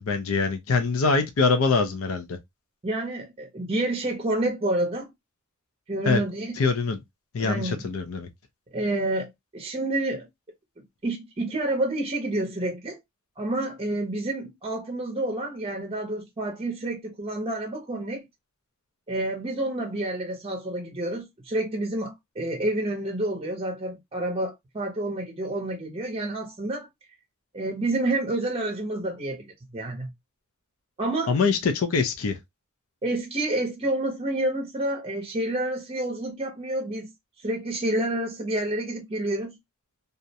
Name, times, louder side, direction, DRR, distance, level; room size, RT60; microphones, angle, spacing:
voice 1, 0.0-2.4 6.1-6.2 6.6-7.0 7.3-8.3 31.3-32.4, left 4 dB, 70° left, 0.5 m, -24 dB
voice 2, 2.8-5.1 5.9-6.6 7.4-7.8 8.7-10.3 11.0-13.0 13.4-18.2 19.1-26.9 27.5-30.1 31.0-31.4 33.0-37.1 37.4-39.6, right 1 dB, 25° right, 0.6 m, -29 dB
2.4 x 2.0 x 2.6 m
head